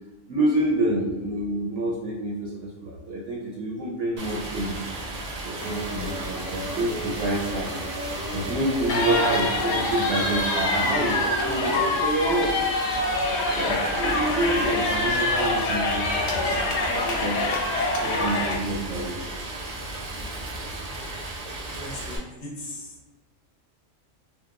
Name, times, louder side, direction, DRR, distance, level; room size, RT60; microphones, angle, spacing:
voice 1, 0.3-4.7 5.4-7.7 8.3-12.5 13.5-17.4 18.0-19.2, right 1 dB, 70° right, -4 dB, 0.9 m, -28 dB
Stream, 4.2-22.2, right 2 dB, 90° right, 0.3 m, -35 dB
sound 1, 5.6-10.9, right 1 dB, 10° right, 0.5 m, -36 dB
sound 2, 8.9-18.5, left 2 dB, 65° left, 0.8 m, -25 dB
voice 2, 21.7-22.9, left 1 dB, 35° left, -5 dB, 0.6 m, -38 dB
2.8 x 2.1 x 2.4 m, 1.2 s
omnidirectional pair, 1.3 m